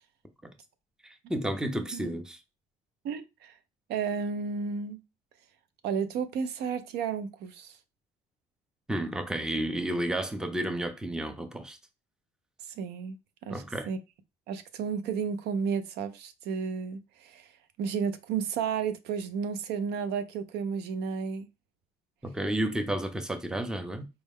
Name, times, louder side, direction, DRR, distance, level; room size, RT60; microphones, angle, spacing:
voice 1, 1.0-2.4 8.9-11.8 13.5-13.9 22.2-24.1, right 1 dB, 5° right, 0.5 m, -31 dB
voice 2, 3.0-3.6 3.9-5.0 5.8-7.8 12.7-13.2 13.5-14.0 14.5-17.5 17.8-21.5, right 6 dB, 80° right, 0.6 m, -32 dB
4.4 x 2.1 x 3.5 m
cardioid pair, 110°, 17 cm